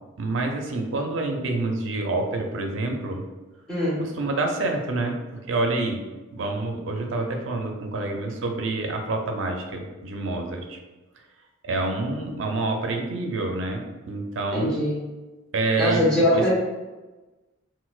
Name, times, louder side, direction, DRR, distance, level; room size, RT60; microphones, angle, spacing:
voice 1, 0.2-3.2 4.0-5.2 5.5-6.0 6.3-10.8 11.6-14.8 15.5-16.0 16.3-16.5, right 2 dB, 70° right, 3 dB, 0.5 m, -27 dB
voice 2, 3.7-4.0 14.5-15.0 15.8-16.5, left 1 dB, 5° left, -8 dB, 1.0 m, -22 dB
4.0 x 2.1 x 2.3 m, 1.2 s
head